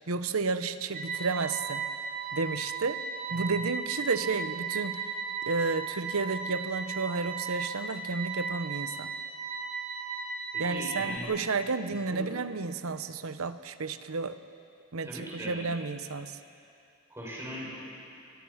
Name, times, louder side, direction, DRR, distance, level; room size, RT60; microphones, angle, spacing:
voice 1, 0.1-1.8 2.3-3.0 3.3-5.1 5.5-9.1 10.6-14.4 14.9-16.4, right 4 dB, 85° right, 11 dB, 1.0 m, -32 dB
sound 1, 0.9-11.2, right 5 dB, 45° right, 2.9 m, -36 dB
voice 2, 10.5-11.3 12.1-12.3 15.0-15.6 17.1-17.7, equal, 15° right, -5 dB, 6.7 m, -39 dB
29.0 x 22.0 x 5.8 m, 2.6 s
head